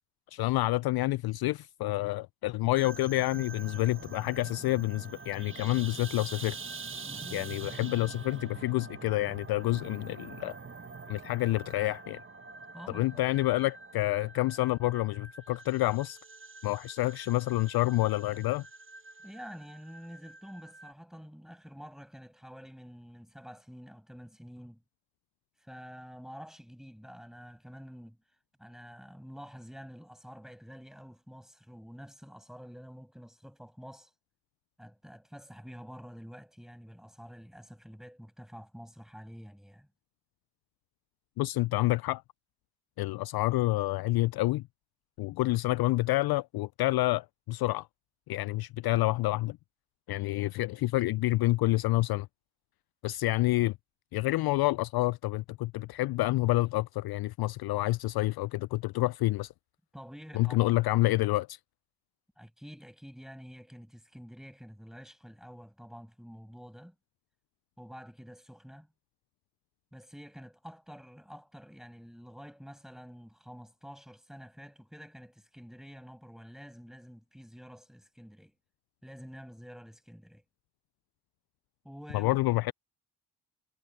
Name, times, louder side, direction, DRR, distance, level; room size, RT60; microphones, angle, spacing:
voice 1, 0.3-6.6 7.3-10.6 11.1-12.2 12.9-16.2 16.6-18.6 41.4-42.2 43.0-44.6 45.2-47.9 48.3-49.6 50.1-52.3 53.0-53.7 54.1-59.5 60.3-61.6 82.1-82.7, left 18 dB, 50° left, 0.5 m, -28 dB
sound 1, 2.8-20.9, right 4 dB, 25° right, 1.5 m, -45 dB
voice 2, 7.0-7.6 12.7-13.4 19.2-24.8 25.6-28.2 28.6-34.1 34.8-39.9 59.9-60.7 61.0-61.1 62.4-66.9 67.8-68.9 69.9-78.5 79.0-80.4 81.8-82.4, equal, ahead, 7.7 m, -48 dB
hypercardioid pair, 50°, 48 cm